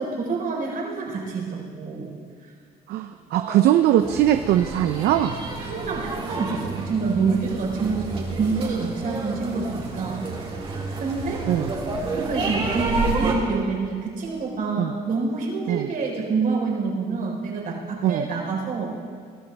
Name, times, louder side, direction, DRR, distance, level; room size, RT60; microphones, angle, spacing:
voice 1, 0.0-2.2 3.3-3.6 5.7-10.5 11.0-11.4 12.2-18.9, right 4 dB, 55° right, -2 dB, 4.1 m, -27 dB
voice 2, 2.9-5.4 11.5-11.7 14.8-14.9 15.7-15.9 18.0-18.3, right 12 dB, 75° right, 8 dB, 0.6 m, -21 dB
sound 1, 4.0-13.3, right 3 dB, 35° right, 2.9 m, -30 dB
21.0 x 12.5 x 3.4 m, 2.1 s
cardioid pair, 110°, 17 cm